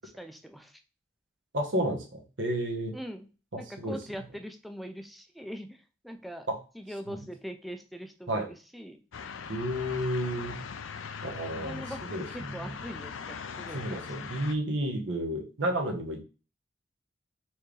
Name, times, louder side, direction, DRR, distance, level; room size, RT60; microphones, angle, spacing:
voice 1, 0.2-0.7 2.9-3.3 3.6-5.8 6.0-6.5 6.8-8.5 8.7-9.0 11.3-14.0, equal, ahead, 6 dB, 0.4 m, -42 dB
voice 2, 1.5-3.0 3.5-4.2 6.5-6.6 7.1-7.2 8.3-8.5 9.5-10.6 11.2-12.8 13.7-16.2, right 1 dB, 75° right, 2 dB, 1.2 m, -32 dB
sound 1, 9.1-14.6, left 6 dB, 85° left, 0.5 m, -40 dB
4.5 x 3.5 x 3.3 m, 0.34 s
head